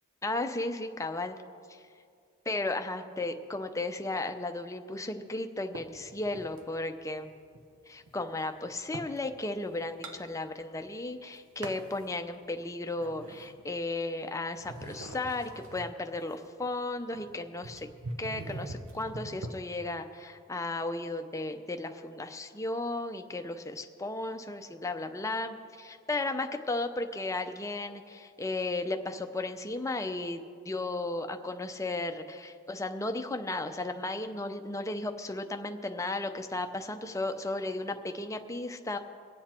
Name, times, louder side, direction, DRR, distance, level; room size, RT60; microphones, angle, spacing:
voice 1, 0.2-1.4 1.7-1.8 2.5-7.3 7.9-17.9 18.2-39.0, left 2 dB, 15° left, 6 dB, 0.6 m, -35 dB
sound 1, 5.7-6.7 7.2-9.2 9.6-10.9 11.2-12.0 12.5-14.2 14.6-19.6, right 2 dB, 75° right, 1.0 m, -43 dB
23.0 x 8.1 x 4.4 m, 2.3 s
head